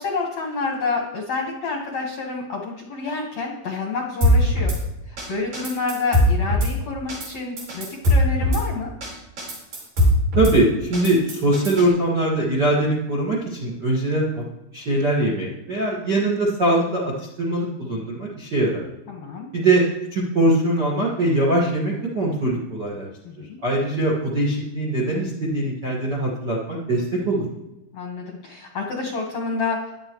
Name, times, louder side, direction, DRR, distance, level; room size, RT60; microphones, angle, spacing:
voice 1, 0.0-4.7 5.1-8.9 19.1-19.5 23.2-23.6 27.9-30.0, left 4 dB, 65° left, 0 dB, 1.7 m, -28 dB
Drum kit / Snare drum, 4.2-4.8 5.2-5.3 5.5-6.7 7.1-7.3 7.6-8.6 9.0-9.1 9.4-10.5 10.9-11.9, left 1 dB, 45° right, 5.8 m, -20 dB
voice 2, 10.3-14.4 14.7-18.8 19.5-19.8 20.1-23.1 23.6-27.4, right 1 dB, 65° right, -4 dB, 1.0 m, -22 dB
16.5 x 11.0 x 3.1 m, 0.98 s
omnidirectional pair, 5.4 m